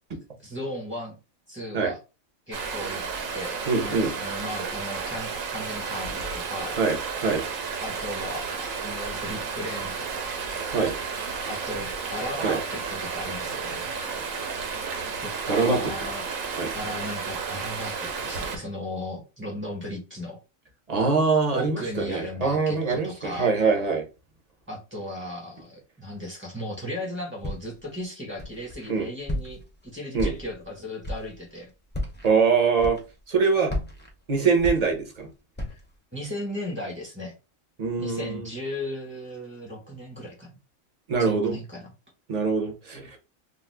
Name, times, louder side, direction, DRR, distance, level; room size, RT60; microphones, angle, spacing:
voice 1, 0.4-1.2 1.5-2.0 2.5-3.0 3.3-6.8 7.8-10.3 11.5-13.9 15.2-16.2 16.7-20.4 21.5-23.5 24.7-31.7 36.1-37.3 38.0-40.5 41.2-41.9, left 1 dB, 10° right, -1 dB, 1.2 m, -36 dB
Stream, 2.5-18.6, right 5 dB, 75° right, 1.1 m, -32 dB
voice 2, 3.7-4.1 6.8-7.0 7.2-7.4 10.7-10.9 12.4-12.6 15.5-15.9 16.6-16.7 20.9-24.0 28.9-29.1 30.1-30.3 32.2-33.0 33.3-33.7 34.3-35.3 37.8-38.5 41.1-41.6 42.3-43.1, right 4 dB, 35° right, 2 dB, 0.7 m, -23 dB
Walk footsteps, 27.4-27.9 28.4-28.9 29.3-29.8 30.2-30.7 31.0-31.4 31.9-32.3 32.8-33.3 33.7-35.2 35.6-35.9, left 1 dB, 15° left, 0.4 m, -33 dB
2.6 x 2.5 x 3.4 m, 0.30 s
omnidirectional pair, 1.4 m